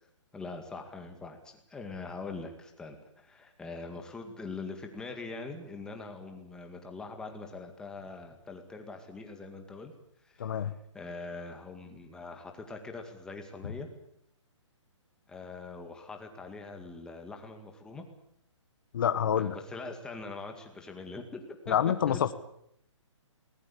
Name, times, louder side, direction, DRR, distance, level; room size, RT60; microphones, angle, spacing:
voice 1, 0.3-9.9 10.2-13.9 15.3-18.1 19.3-21.8 22.1-22.3, left 3 dB, 5° left, 4 dB, 2.0 m, -43 dB
voice 2, 10.4-10.7 18.9-19.6 21.7-22.3, left 9 dB, 45° left, 10 dB, 1.4 m, -27 dB
22.0 x 19.5 x 8.5 m, 0.72 s
hypercardioid pair, 165°, 16 cm